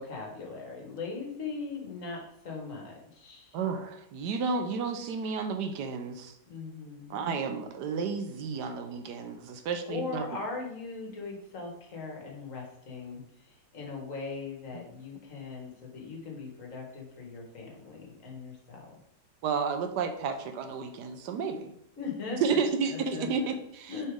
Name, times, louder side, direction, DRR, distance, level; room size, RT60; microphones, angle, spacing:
voice 1, 0.0-3.6 6.5-7.3 9.9-18.9 22.0-22.6 22.9-23.5 23.9-24.1, left 4 dB, 50° left, -1 dB, 1.8 m, -39 dB
voice 2, 3.5-6.4 7.1-10.2 19.4-21.7 22.4-24.0, right 5 dB, 75° right, 6 dB, 1.3 m, -31 dB
6.6 x 4.3 x 3.6 m, 0.75 s
omnidirectional pair, 1.8 m